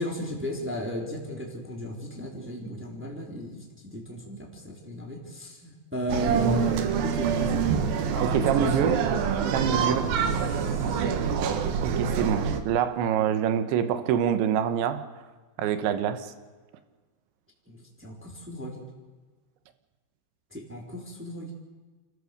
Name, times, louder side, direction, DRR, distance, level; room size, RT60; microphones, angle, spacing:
voice 1, 0.0-6.8 7.0-7.7 8.1-8.9 9.4-9.8 10.5-10.7 17.7-18.8 20.5-21.5, equal, 5° right, -1 dB, 3.0 m, -34 dB
sound 1, 6.1-12.6, right 7 dB, 65° right, 2.8 m, -26 dB
voice 2, 8.2-9.0 9.5-10.1 11.8-15.0 15.6-16.3, right 9 dB, 85° right, 10 dB, 3.6 m, -26 dB
29.5 x 14.0 x 6.6 m, 1.3 s
omnidirectional pair, 5.1 m